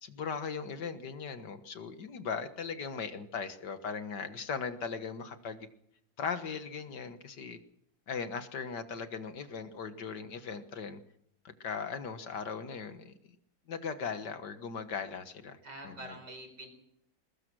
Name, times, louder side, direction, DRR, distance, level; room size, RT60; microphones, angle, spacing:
voice 1, 0.0-5.7 6.2-7.6 8.1-11.0 11.4-13.1 13.7-16.2, left 5 dB, 65° left, 9 dB, 2.0 m, -38 dB
voice 2, 15.6-16.7, right 1 dB, 60° right, 6 dB, 5.3 m, -45 dB
22.5 x 19.5 x 6.2 m, 0.72 s
omnidirectional pair, 2.0 m